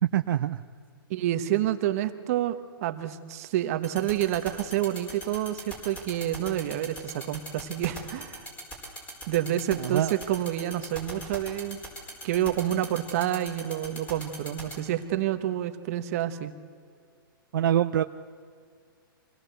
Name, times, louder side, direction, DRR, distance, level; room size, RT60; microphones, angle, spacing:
voice 1, 0.0-0.6 9.8-10.2 17.5-18.0, right 11 dB, 65° right, 8 dB, 0.6 m, -24 dB
voice 2, 1.1-8.4 9.3-11.8 12.2-16.5, right 12 dB, 40° right, 9 dB, 1.2 m, -28 dB
sound 1, 3.8-14.7, equal, 10° left, 4.6 m, -39 dB
25.0 x 18.0 x 8.0 m, 2.2 s
hypercardioid pair, 160°, 12 cm